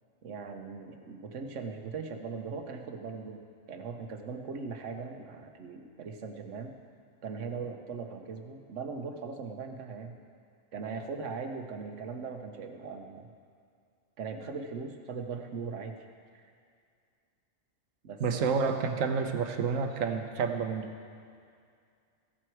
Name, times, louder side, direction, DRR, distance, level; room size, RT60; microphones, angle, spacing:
voice 1, 0.2-6.7 7.2-10.2 10.7-13.3 14.2-16.0 16.3-16.5 18.0-18.6, right 5 dB, 70° right, 5 dB, 1.2 m, -39 dB
voice 2, 18.2-20.9, right 5 dB, 90° right, 6 dB, 1.2 m, -29 dB
15.0 x 7.9 x 4.6 m, 2.3 s
omnidirectional pair, 1.3 m